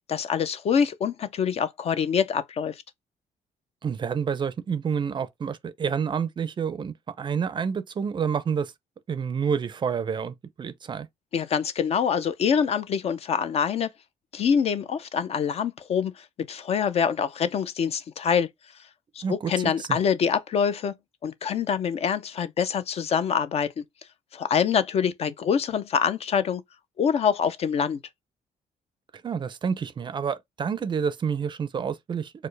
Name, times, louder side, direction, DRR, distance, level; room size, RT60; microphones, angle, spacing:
voice 1, 0.1-2.7 11.3-13.9 14.3-16.1 16.5-18.5 19.2-20.9 21.2-23.7 24.3-26.6 27.0-28.0, left 7 dB, 45° left, 0.4 m, -25 dB
voice 2, 3.8-8.7 9.1-11.1 19.2-20.0 29.2-32.3, right 6 dB, 30° right, 0.4 m, -29 dB
4.5 x 2.0 x 3.2 m
cardioid pair, 125°, 15 cm